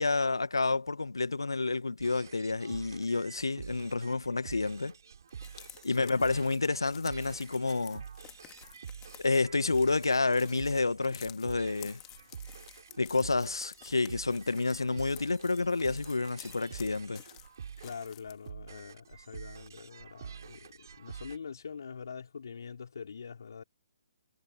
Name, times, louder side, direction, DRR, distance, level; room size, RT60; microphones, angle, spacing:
voice 1, 0.0-4.9 5.8-8.0 9.2-12.0 13.0-17.2, left 3 dB, 75° left, 1.5 m, -29 dB
sound 1, 2.0-21.4, right 7 dB, 55° right, 4.9 m, -47 dB
sound 2, 5.3-18.5, left 18 dB, 20° left, 2.4 m, -53 dB
voice 2, 5.5-6.3 17.8-23.6, left 6 dB, 60° left, 3.2 m, -44 dB
figure-of-eight pair, 135°, 2 cm